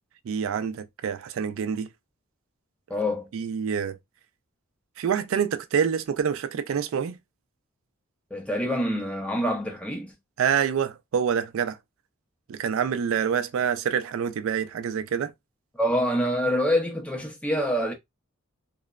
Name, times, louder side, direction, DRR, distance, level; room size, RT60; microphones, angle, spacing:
voice 1, 0.3-1.9 3.3-4.0 5.0-7.2 10.4-11.8 12.5-15.3, right 7 dB, 75° right, 0.3 m, -26 dB
voice 2, 2.9-3.3 8.3-10.1 15.8-17.9, equal, 5° left, 0.5 m, -26 dB
2.9 x 2.1 x 2.3 m
head